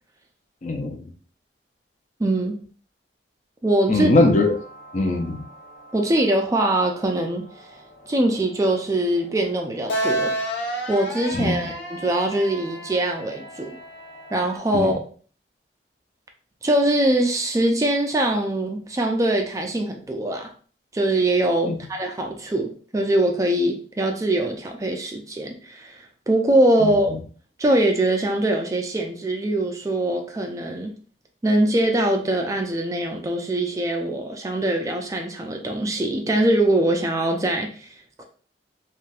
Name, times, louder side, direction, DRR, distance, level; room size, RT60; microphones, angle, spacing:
voice 1, 0.6-1.0 3.9-4.6 4.9-5.4 11.3-11.6 14.7-14.9 21.7-21.8 26.8-26.9, left 2 dB, 40° left, 0.5 m, -20 dB
voice 2, 2.2-2.6 3.6-4.1 5.9-7.7 8.1-10.3 10.9-13.8 14.3-14.9 16.6-20.5 20.9-27.2 27.6-30.9 31.4-37.9 38.2-38.3, right 1 dB, 20° right, 0.4 m, -22 dB
sound 1, 4.2-14.6, right 1 dB, 75° left, 0.8 m, -33 dB
3.3 x 2.6 x 2.3 m
head